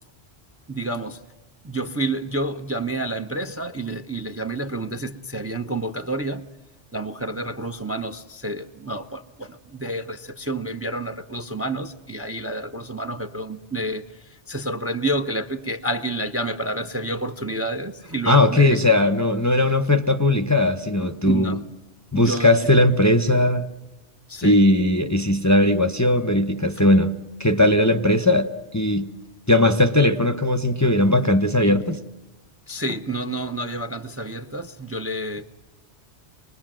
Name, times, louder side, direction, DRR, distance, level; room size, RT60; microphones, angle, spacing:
voice 1, 0.7-1.2 1.6-6.5 6.9-18.8 21.2-21.6 22.1-22.6 24.3-24.6 32.7-35.4, right 1 dB, 15° right, 0.7 m, -29 dB
voice 2, 18.3-21.6 22.1-23.6 24.4-27.1 27.4-29.1 29.5-32.0, left 1 dB, 15° left, 0.8 m, -18 dB
25.5 x 20.5 x 7.6 m
omnidirectional pair, 1.1 m